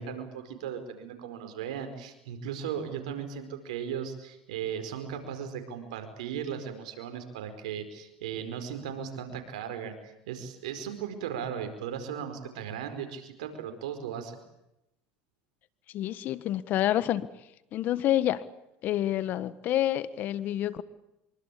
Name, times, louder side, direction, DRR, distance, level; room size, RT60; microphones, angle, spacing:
voice 1, 0.0-14.4, right 8 dB, 85° right, 7 dB, 4.8 m, -37 dB
voice 2, 15.9-17.3 17.7-18.4 18.8-20.8, left 12 dB, 55° left, 16 dB, 1.5 m, -28 dB
25.0 x 24.0 x 8.6 m, 0.88 s
supercardioid pair, 105°, 4 cm